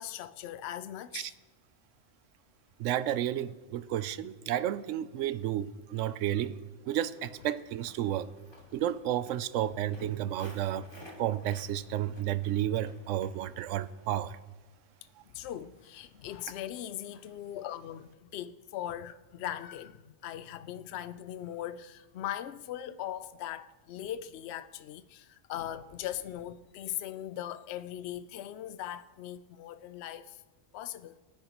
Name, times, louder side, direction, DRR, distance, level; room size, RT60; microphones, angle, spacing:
voice 1, 0.0-1.3 15.3-30.4 30.7-31.2, left 12 dB, 65° left, 0.8 m, -40 dB
voice 2, 2.8-6.6 6.9-8.3 8.7-10.9 11.2-14.4, right 12 dB, 80° right, 0.9 m, -32 dB
Walk footsteps, 6.9-14.3, equal, 20° left, 2.5 m, -55 dB
23.5 x 10.5 x 3.0 m
omnidirectional pair, 1.3 m